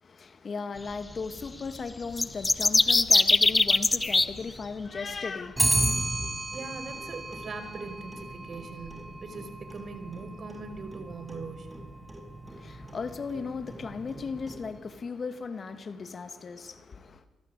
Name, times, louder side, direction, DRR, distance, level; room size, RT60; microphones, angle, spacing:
voice 1, 0.0-6.0 12.5-17.2, left 5 dB, 45° left, 9 dB, 2.2 m, -37 dB
sound 1, 2.1-4.3, left 2 dB, 20° left, 1.2 m, -21 dB
Clock, 5.6-14.9, right 1 dB, 15° right, 5.9 m, -34 dB
voice 2, 6.5-11.9, right 4 dB, 50° right, 9 dB, 5.4 m, -41 dB
29.0 x 24.0 x 8.4 m, 1.2 s
supercardioid pair, 65°, 0 cm